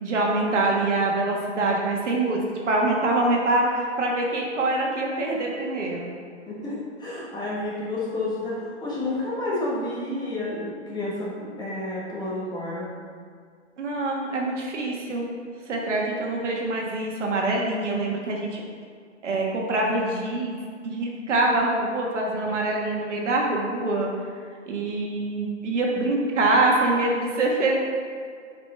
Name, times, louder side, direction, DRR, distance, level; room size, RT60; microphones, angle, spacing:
voice 1, 0.0-2.4 2.7-6.1 13.8-15.3 15.7-18.6 19.2-20.6 20.8-24.1 24.7-27.8, right 2 dB, 75° right, -1 dB, 1.6 m, -24 dB
voice 2, 6.5-12.9, left 2 dB, 10° left, -7 dB, 1.5 m, -30 dB
6.0 x 5.0 x 4.5 m, 2.1 s
hypercardioid pair, 130°, 36 cm